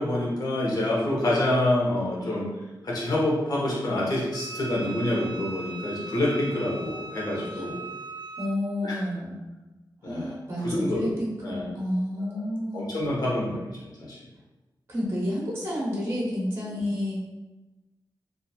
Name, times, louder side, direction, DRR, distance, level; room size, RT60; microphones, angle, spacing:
voice 1, 0.0-2.5 2.8-7.8 8.8-9.0 10.0-10.3 10.6-11.1 11.4-11.7 12.2-12.3 12.7-14.2 16.7-16.8, left 1 dB, 55° left, -5 dB, 0.8 m, -27 dB
Wind instrument woodwind instrument, 4.3-8.6, right 2 dB, 75° right, 0.4 m, -39 dB
voice 2, 8.4-9.4 10.0-12.9 14.9-17.2, left 1 dB, 35° right, -4 dB, 0.7 m, -30 dB
2.8 x 2.4 x 2.3 m, 1.1 s
wide cardioid pair, 120°, 8 cm